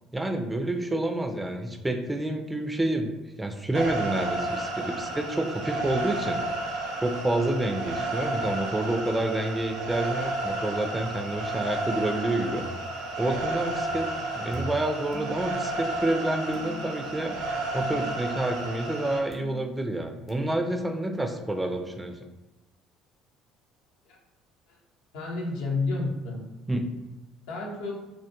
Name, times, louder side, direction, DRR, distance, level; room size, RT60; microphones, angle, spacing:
voice 1, 0.1-3.1 3.4-6.4 7.0-12.6 13.2-17.4 17.7-22.2 26.7-26.8, right 1 dB, 10° right, 4 dB, 0.3 m, -28 dB
sound 1, 3.7-19.2, right 2 dB, 70° right, 0.6 m, -32 dB
sound 2, 12.6-13.1 13.9-15.7 16.5-17.1 17.8-18.4 19.3-19.9 20.3-20.4, right 2 dB, 40° left, 0.8 m, -42 dB
voice 2, 25.1-26.4 27.5-28.0, left 3 dB, 70° left, -2 dB, 0.6 m, -30 dB
2.2 x 2.1 x 2.8 m, 1.0 s
figure-of-eight pair, 55°, 0 cm